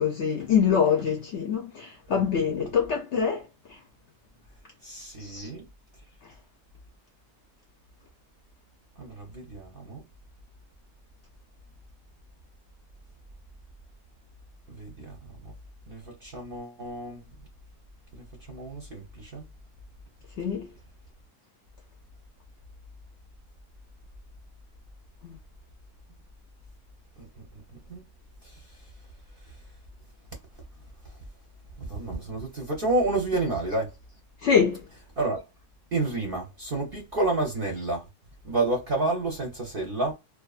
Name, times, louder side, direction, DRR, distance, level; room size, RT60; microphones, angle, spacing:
voice 1, 0.0-3.4 5.2-5.5 20.4-20.7 34.4-34.8, left 7 dB, 65° left, 0.7 m, -24 dB
voice 2, 4.8-5.6 9.0-10.0 14.7-15.5 15.9-17.2 18.1-19.4 27.2-27.3 27.9-28.0 28.4-28.6 31.8-33.9 35.2-35.4 35.9-38.1 38.4-40.1, right 2 dB, 50° right, 0.7 m, -30 dB
2.8 x 2.3 x 2.3 m
omnidirectional pair, 1.7 m